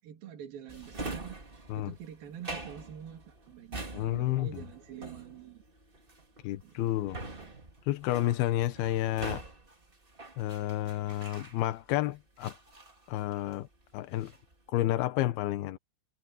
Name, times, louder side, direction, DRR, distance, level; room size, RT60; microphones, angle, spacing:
voice 1, 0.0-5.6 6.6-7.5 14.1-14.2, right 9 dB, 55° right, 4.4 m, -47 dB
Drawer open or close, 0.7-12.0 12.4-13.7 14.0-14.5, right 2 dB, 25° right, 1.1 m, -44 dB
voice 2, 3.9-4.5 6.4-7.2 7.9-9.4 10.4-12.6 13.1-13.7 13.9-14.3 14.7-15.8, left 15 dB, 75° left, 2.4 m, -30 dB
omnidirectional pair, 5.5 m